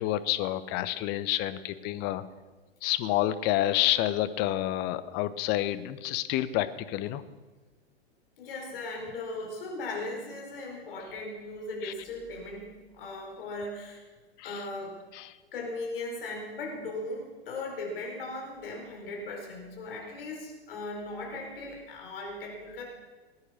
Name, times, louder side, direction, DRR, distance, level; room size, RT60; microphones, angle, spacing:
voice 1, 0.0-2.2 2.8-7.2 11.8-11.9 14.4-14.6 15.1-15.3, left 14 dB, 30° left, 13 dB, 0.8 m, -29 dB
voice 2, 8.4-14.0 14.4-15.0 15.5-22.8, left 2 dB, 60° left, 0 dB, 4.7 m, -38 dB
19.0 x 9.7 x 6.0 m, 1.3 s
figure-of-eight pair, 100°, 32 cm